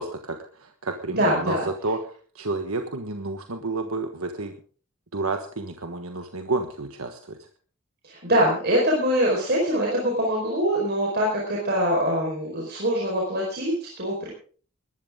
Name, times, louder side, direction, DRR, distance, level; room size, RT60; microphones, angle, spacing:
voice 1, 0.0-2.0 2.3-4.5 5.1-7.4, right 3 dB, 75° right, 5 dB, 1.4 m, -30 dB
voice 2, 1.1-1.6 8.0-14.3, equal, 45° right, -2 dB, 4.8 m, -23 dB
20.0 x 13.5 x 3.7 m, 0.43 s
head